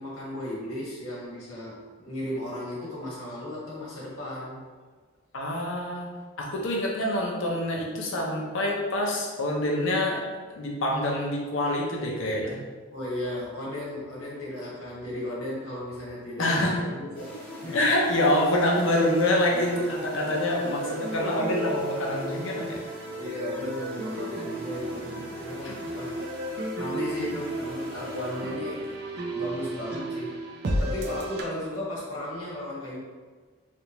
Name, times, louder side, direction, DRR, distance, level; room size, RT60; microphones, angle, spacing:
voice 1, 0.0-4.6 12.9-17.9 23.2-26.2 26.6-28.9 29.3-33.0, left 1 dB, 80° left, -6 dB, 1.4 m, -35 dB
voice 2, 5.3-6.1 6.4-10.2 10.5-12.6 16.4-16.9 17.7-22.8 25.6-25.7, left 1 dB, 65° left, -2 dB, 0.6 m, -26 dB
sound 1, 17.1-29.0, left 2 dB, 5° left, 0.5 m, -39 dB
sound 2, 18.9-31.4, right 1 dB, 50° right, 0.4 m, -34 dB
3.3 x 2.5 x 2.9 m, 1.4 s
head